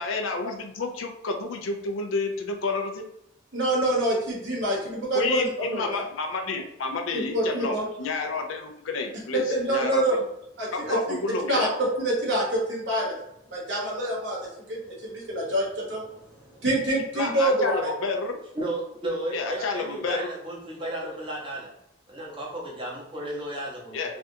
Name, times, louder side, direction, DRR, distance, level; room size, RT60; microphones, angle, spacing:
voice 1, 0.0-3.0 5.1-9.4 9.7-10.0 10.7-11.7 17.2-18.4 19.3-20.3 20.8-20.9 23.9-24.1, left 3 dB, 85° left, 4 dB, 0.5 m, -30 dB
voice 2, 3.5-5.8 7.1-7.8 9.5-10.2 10.6-11.2 11.5-13.2 13.5-14.4 14.7-14.8 15.0-16.0 16.6-17.8, right 1 dB, 70° right, -4 dB, 1.1 m, -26 dB
voice 3, 18.5-21.7 22.1-24.2, right 1 dB, 25° right, -4 dB, 0.8 m, -34 dB
3.3 x 2.4 x 2.7 m, 0.79 s
head